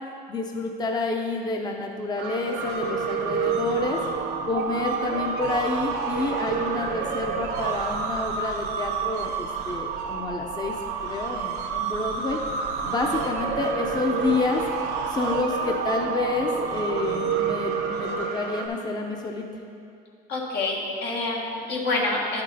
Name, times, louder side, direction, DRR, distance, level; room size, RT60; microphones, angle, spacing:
voice 1, 0.3-4.0 4.4-10.7 11.0-12.4 12.8-14.6 15.1-19.5, left 3 dB, 25° left, 2 dB, 0.6 m, -28 dB
sound 1, 2.2-18.7, right 6 dB, 80° right, 0.8 m, -29 dB
voice 2, 20.3-22.4, left 2 dB, 80° left, -2 dB, 1.6 m, -27 dB
9.8 x 5.3 x 4.1 m, 2.5 s
cardioid pair, 110°, 17 cm